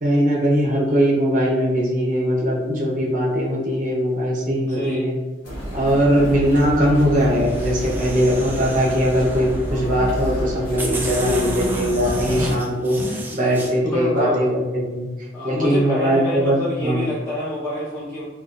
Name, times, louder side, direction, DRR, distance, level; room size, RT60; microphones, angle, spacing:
voice 1, 0.0-5.1 5.7-14.5 14.9-15.1 15.4-17.1, equal, 45° right, -5 dB, 0.8 m, -20 dB
voice 2, 4.6-5.0 11.2-11.4 13.8-14.4 15.3-18.2, left 2 dB, 10° left, -11 dB, 0.9 m, -26 dB
sound 1, 5.4-12.5, equal, 60° left, 1.3 m, -29 dB
sound 2, 7.3-9.7 10.4-10.5 10.8-13.7, right 1 dB, 10° right, 0.3 m, -31 dB
3.8 x 2.5 x 2.5 m, 1.2 s
head